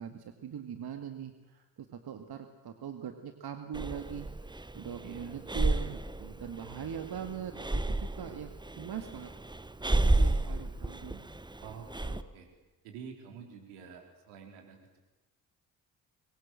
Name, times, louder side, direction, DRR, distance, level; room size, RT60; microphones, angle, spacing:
voice 1, 0.0-4.3 4.7-9.3 9.9-11.3, right 8 dB, 50° right, 7 dB, 2.1 m, -41 dB
Breathing, 3.7-12.2, right 2 dB, 10° right, 1.2 m, -32 dB
voice 2, 5.0-5.6 11.6-12.5 12.8-15.0, right 6 dB, 75° right, 3 dB, 4.2 m, -48 dB
25.0 x 22.5 x 7.7 m, 1.1 s
hypercardioid pair, 45°, 49 cm